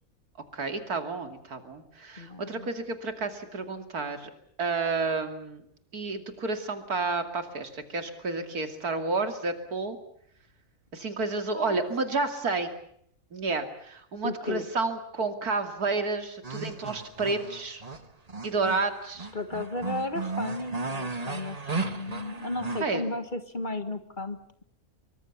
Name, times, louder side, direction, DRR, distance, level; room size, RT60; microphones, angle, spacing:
voice 1, 0.5-4.3 4.6-5.6 5.9-10.0 10.9-12.7 13.3-17.8 18.4-19.3 22.8-23.1, right 3 dB, 85° right, 7 dB, 3.1 m, -30 dB
voice 2, 2.2-2.7 11.6-11.8 14.2-14.7 19.3-24.6, left 2 dB, 35° left, 9 dB, 1.7 m, -34 dB
sound 1, 16.4-22.8, right 3 dB, 25° right, 1.6 m, -35 dB
25.0 x 23.5 x 7.1 m, 0.67 s
omnidirectional pair, 1.6 m